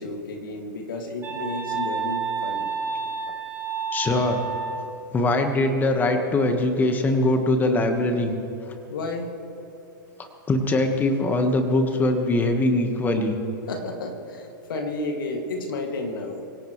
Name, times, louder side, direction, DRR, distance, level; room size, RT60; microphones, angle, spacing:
voice 1, 0.0-2.7 8.9-9.4 13.7-16.4, left 2 dB, 80° left, 3 dB, 2.4 m, -32 dB
sound 1, 1.2-4.9, right 5 dB, 20° right, 2.7 m, -29 dB
voice 2, 3.9-4.4 5.1-8.3 10.5-13.4, left 2 dB, 15° left, 5 dB, 1.6 m, -22 dB
24.0 x 17.0 x 3.3 m, 2.7 s
hypercardioid pair, 135°, 11 cm